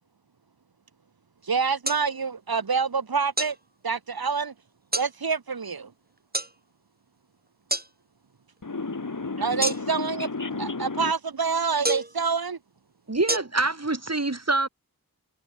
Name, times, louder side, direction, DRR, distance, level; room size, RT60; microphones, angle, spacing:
voice 1, 1.4-3.6 3.8-4.5 4.9-5.9 9.4-10.3 10.6-12.6, right 5 dB, 85° right, 1.8 m, -27 dB
sound 1, 1.8-2.0 3.4-3.6 4.9-5.1 6.3-6.5 7.7-7.9 9.6-10.1 11.8-12.2 13.3-13.4, right 1 dB, 25° right, 7.3 m, -27 dB
voice 2, 8.6-11.1, left 3 dB, 60° left, 3.6 m, -32 dB
voice 3, 13.1-14.7, right 2 dB, 45° right, 5.3 m, -25 dB
wide cardioid pair, 50°, 36 cm